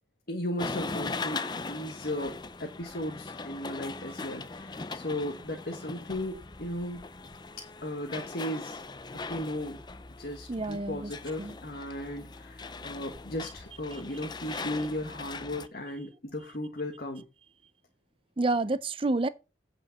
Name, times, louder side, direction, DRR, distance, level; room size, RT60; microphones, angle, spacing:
voice 1, 0.3-7.0 7.8-8.8 9.3-9.8 10.2-17.3, left 1 dB, 55° left, 1.5 m, -36 dB
sound 1, 0.6-15.7, left 3 dB, 25° left, 0.5 m, -40 dB
voice 2, 10.5-11.1 11.4-11.6 18.4-19.3, right 2 dB, 30° right, 0.5 m, -28 dB
8.8 x 5.1 x 6.6 m
head